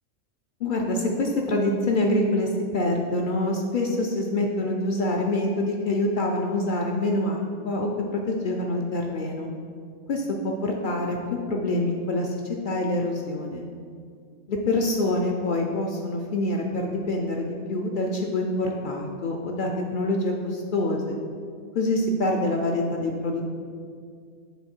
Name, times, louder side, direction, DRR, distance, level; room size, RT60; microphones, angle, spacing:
voice 1, 0.6-9.5 10.1-13.7 14.5-21.1 21.7-23.4, left 2 dB, 55° left, 1 dB, 0.5 m, -26 dB
7.0 x 3.9 x 4.4 m, 2.2 s
omnidirectional pair, 1.3 m